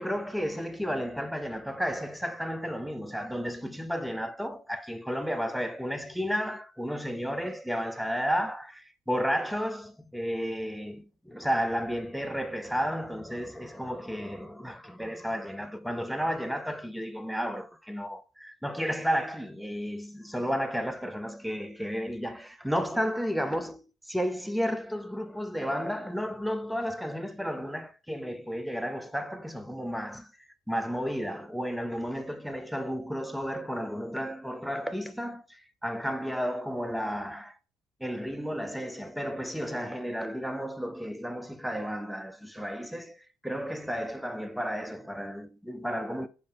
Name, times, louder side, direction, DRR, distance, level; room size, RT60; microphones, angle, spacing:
voice 1, 0.0-30.3 30.7-37.6 38.0-46.3, equal, ahead, 0.5 m, -32 dB
5.1 x 2.6 x 3.4 m
supercardioid pair, 75°, 8 cm